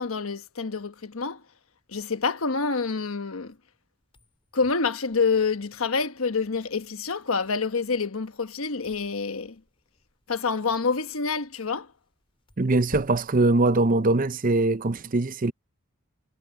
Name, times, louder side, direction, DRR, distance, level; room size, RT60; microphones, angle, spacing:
voice 1, 0.0-1.4 1.9-3.5 4.5-9.6 10.3-11.9, left 4 dB, 85° left, 1.2 m, -27 dB
sound 1, 4.0-14.5, equal, 25° left, 5.3 m, -54 dB
voice 2, 12.6-15.5, right 2 dB, 40° right, 0.7 m, -22 dB
head